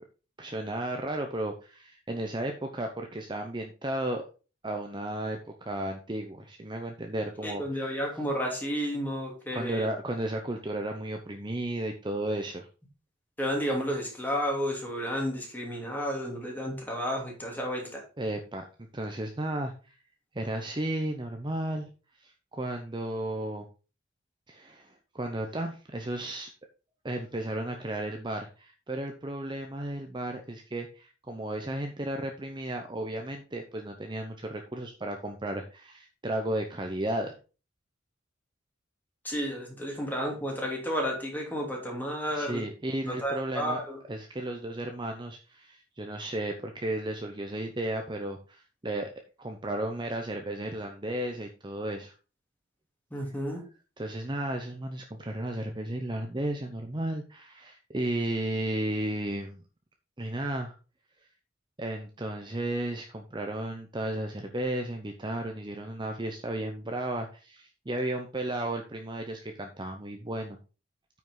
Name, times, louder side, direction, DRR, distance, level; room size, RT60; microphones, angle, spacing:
voice 1, 0.4-4.2 4.6-8.0 9.5-12.7 18.2-18.6 18.9-20.0 20.3-21.9 22.2-23.7 24.5-26.5 27.0-37.4 42.3-43.8 44.1-49.1 49.4-52.1 54.0-59.6 60.2-60.7 61.8-70.6, right 1 dB, 25° right, 4 dB, 0.8 m, -34 dB
voice 2, 7.4-9.9 13.4-18.0 39.2-42.6 43.0-44.0 53.1-53.6, equal, 10° left, -1 dB, 2.9 m, -32 dB
9.1 x 6.0 x 3.9 m, 0.34 s
head